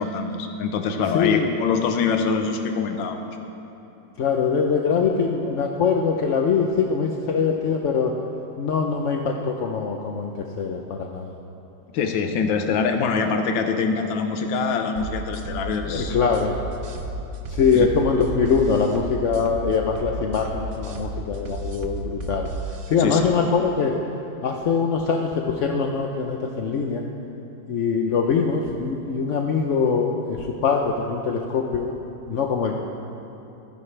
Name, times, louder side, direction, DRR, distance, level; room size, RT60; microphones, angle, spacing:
voice 1, 0.0-3.2 11.9-16.2 17.7-17.9 23.0-23.2, left 5 dB, 80° left, 5 dB, 1.6 m, -24 dB
voice 2, 1.1-1.5 4.2-8.2 8.6-11.3 15.9-16.6 17.5-22.5 22.9-24.0 24.4-27.0 27.7-31.9 32.3-32.7, left 5 dB, 60° left, 2 dB, 0.8 m, -23 dB
sound 1, 15.0-22.9, right 2 dB, 50° right, 1.0 m, -32 dB
23.5 x 10.5 x 3.3 m, 3.0 s
omnidirectional pair, 2.1 m